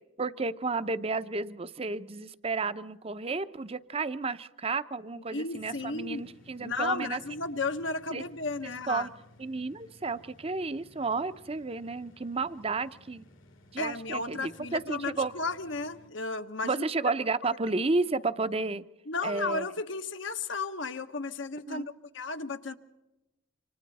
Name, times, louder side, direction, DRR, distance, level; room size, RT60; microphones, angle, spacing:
voice 1, 0.2-7.2 8.1-8.3 8.6-9.1 9.4-13.2 13.7-15.3 16.6-18.8 19.2-19.7 21.7-21.9, right 3 dB, 30° right, 14 dB, 0.7 m, -32 dB
voice 2, 5.3-6.2 6.6-9.1 13.8-16.8 19.1-21.8 22.1-22.7, left 3 dB, 75° left, 8 dB, 1.3 m, -34 dB
sound 1, 5.5-16.1, left 1 dB, 90° left, 3.1 m, -57 dB
28.0 x 25.5 x 4.2 m, 0.94 s
head